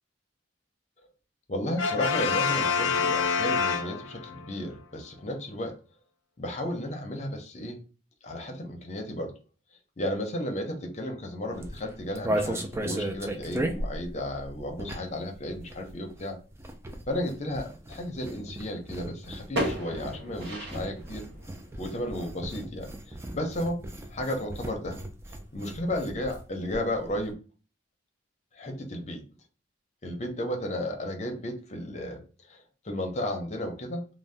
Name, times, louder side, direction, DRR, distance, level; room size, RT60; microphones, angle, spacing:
voice 1, 1.5-5.8 6.4-7.8 8.2-9.3 10.0-16.4 17.1-21.3 21.8-23.8 24.1-25.0 25.5-27.4 28.5-29.2 30.0-34.1, left 1 dB, 35° left, 2 dB, 0.6 m, -33 dB
Brass instrument, 1.8-4.4, left 5 dB, 80° left, 0.4 m, -27 dB
sound 1, 11.5-15.3 15.5-26.4 26.7-26.8 27.0-27.3, right 1 dB, 15° right, 0.3 m, -36 dB
sound 2, 17.4-18.9 19.4-22.3, equal, 60° right, 0.8 m, -36 dB
2.6 x 2.0 x 3.2 m, 0.36 s
head